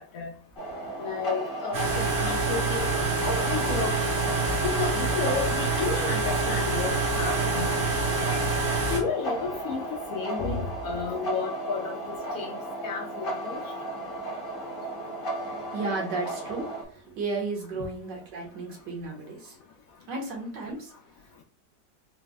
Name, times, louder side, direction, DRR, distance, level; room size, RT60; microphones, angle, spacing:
sound 1, 0.6-16.8, right 2 dB, 35° left, 1.0 m, -35 dB
voice 1, 1.0-3.9 4.6-7.7 8.9-9.8 10.1-12.0 12.3-12.5 12.8-13.6, left 5 dB, 70° left, 0 dB, 0.9 m, -32 dB
sound 2, 1.7-9.0, right 3 dB, 55° right, 1.0 m, -26 dB
voice 2, 15.7-19.6 20.1-20.9, right 3 dB, 75° right, -1 dB, 1.7 m, -33 dB
4.1 x 2.1 x 3.4 m, 0.42 s
omnidirectional pair, 1.9 m